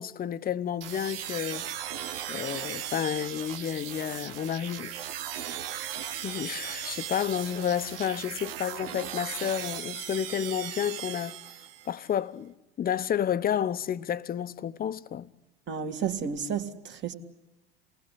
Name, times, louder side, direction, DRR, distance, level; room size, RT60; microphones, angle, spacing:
voice 1, 0.0-1.7 2.3-4.9 6.2-11.4 11.9-15.3, left 9 dB, 30° left, 1.0 m, -31 dB
sound 1, 0.8-12.0, right 10 dB, 75° right, 1.4 m, -37 dB
voice 2, 15.7-17.1, right 7 dB, 40° right, 2.4 m, -32 dB
28.5 x 19.5 x 8.5 m
hypercardioid pair, 80°, 29 cm